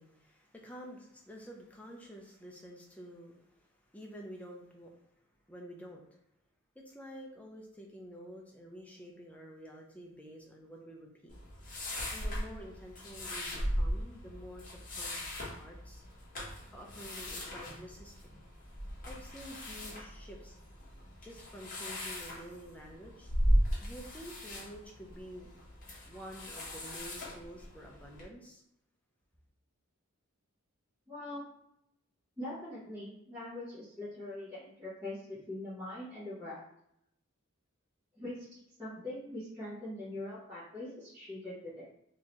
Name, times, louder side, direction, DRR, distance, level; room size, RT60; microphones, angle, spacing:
voice 1, 0.0-5.0 5.5-6.0 6.7-11.4 12.1-16.0 16.7-18.4 19.1-20.6 21.2-23.3 23.8-25.5 26.1-28.6, equal, 5° left, -1 dB, 0.5 m, -49 dB
sound 1, 11.3-28.2, equal, 40° left, 1.1 m, -37 dB
voice 2, 31.1-31.4 32.4-36.6 38.2-38.5 38.8-41.9, left 1 dB, 15° right, -13 dB, 1.2 m, -42 dB
3.7 x 2.8 x 3.0 m, 0.78 s
head